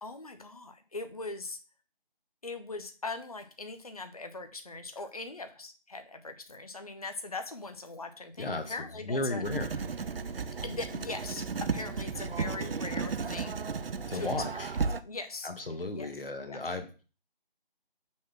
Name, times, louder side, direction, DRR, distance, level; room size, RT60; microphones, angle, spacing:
voice 1, 0.0-1.6 2.4-9.4 10.6-13.7 14.1-14.6 15.0-15.5 16.0-16.1 16.4-16.6, left 3 dB, 40° left, 8 dB, 0.7 m, -40 dB
voice 2, 8.4-9.8 14.1-14.7 15.4-17.0, left 2 dB, 65° left, 6 dB, 1.6 m, -35 dB
Writing, 9.4-15.0, right 5 dB, 70° right, 0.6 m, -34 dB
6.2 x 3.9 x 6.0 m, 0.36 s
figure-of-eight pair, 175°, 30 cm